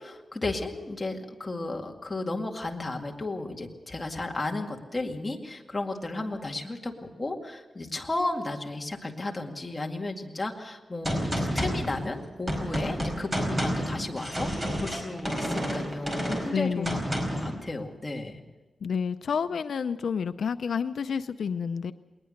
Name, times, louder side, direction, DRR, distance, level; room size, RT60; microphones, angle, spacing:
voice 1, 0.0-14.5 14.8-18.4, left 2 dB, 20° left, 1 dB, 2.1 m, -34 dB
Gunshot gunfire, 11.0-17.5, equal, 20° right, 4.8 m, -30 dB
voice 2, 16.5-17.0 18.8-21.9, left 6 dB, 80° left, 10 dB, 0.5 m, -29 dB
20.5 x 20.0 x 6.5 m, 1.3 s
wide cardioid pair, 140°, 0 cm